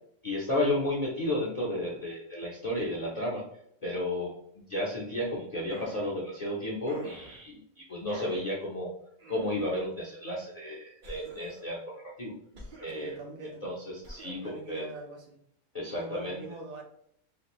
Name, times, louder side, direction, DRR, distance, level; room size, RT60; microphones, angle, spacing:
voice 1, 0.2-3.5 3.8-8.9 9.3-12.3 12.8-13.1 13.6-14.9 15.7-16.4, left 1 dB, 35° left, -5 dB, 0.7 m, -33 dB
sound 1, 5.7-6.1 6.9-7.4 8.1-8.5 9.2-9.8 11.0-11.7 12.5-13.2 14.0-14.5, right 1 dB, 45° right, 0.7 m, -46 dB
voice 2, 12.9-13.7 14.4-15.4 15.9-16.8, right 2 dB, 75° right, 0 dB, 1.3 m, -43 dB
3.3 x 2.6 x 3.0 m, 0.72 s
omnidirectional pair, 1.5 m